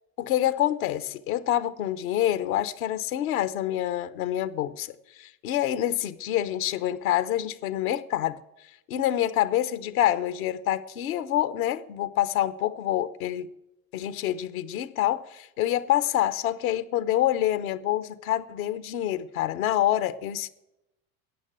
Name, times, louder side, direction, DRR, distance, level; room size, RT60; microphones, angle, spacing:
voice 1, 0.2-8.4 8.9-13.5 13.9-20.5, left 12 dB, 80° left, 1.0 m, -27 dB
13.5 x 8.7 x 7.6 m
hypercardioid pair, 90°, 42 cm